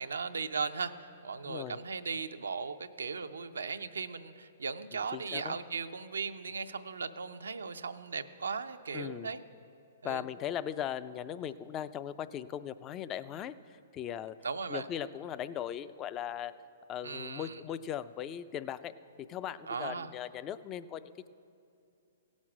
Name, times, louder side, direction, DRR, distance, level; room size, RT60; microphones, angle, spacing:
voice 1, 0.0-9.4 10.0-10.3 14.4-14.9 17.0-17.6 19.7-20.1, right 5 dB, 85° right, 9 dB, 0.5 m, -37 dB
voice 2, 1.5-1.8 4.9-5.6 8.9-9.3 10.0-14.4 14.7-16.5 16.9-21.3, left 10 dB, 30° left, 14 dB, 0.4 m, -39 dB
17.0 x 6.2 x 6.1 m, 2.6 s
hypercardioid pair, 125°, 0 cm